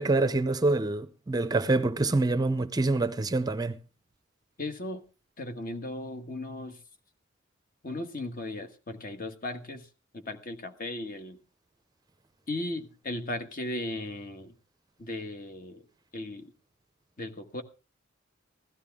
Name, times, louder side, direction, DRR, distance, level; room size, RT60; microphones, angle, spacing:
voice 1, 0.0-3.8, right 2 dB, 20° right, 0.6 m, -26 dB
voice 2, 4.6-5.0 5.4-6.8 7.8-9.9 10.1-11.4 12.5-14.5 15.0-15.8 16.1-16.5 17.2-17.6, left 1 dB, 45° left, 1.4 m, -36 dB
16.0 x 13.0 x 3.6 m
head